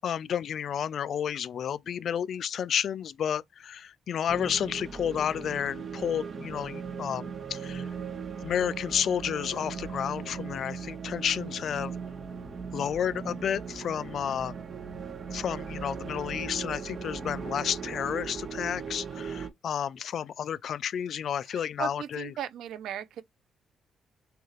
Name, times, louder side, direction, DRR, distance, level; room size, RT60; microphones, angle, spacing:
voice 1, 0.0-7.8 8.4-11.9 12.7-14.5 15.3-22.3, left 8 dB, 55° left, 0.3 m, -31 dB
sound 1, 4.3-19.5, right 6 dB, 40° right, 0.8 m, -38 dB
voice 2, 21.5-23.2, right 10 dB, 85° right, 0.6 m, -37 dB
6.8 x 2.5 x 3.1 m
cardioid pair, 145°, 0 cm